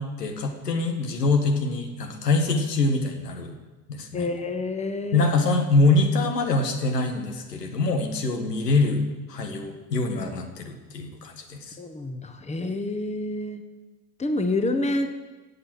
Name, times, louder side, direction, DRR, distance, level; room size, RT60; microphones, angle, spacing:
voice 1, 0.0-3.5 3.9-4.3 5.1-9.0 9.3-11.8, left 3 dB, 75° left, 5 dB, 1.7 m, -24 dB
voice 2, 4.1-5.3 11.8-13.6 14.2-15.1, left 2 dB, 15° left, 8 dB, 1.3 m, -28 dB
16.0 x 8.1 x 6.2 m, 1.2 s
figure-of-eight pair, 65°, 48 cm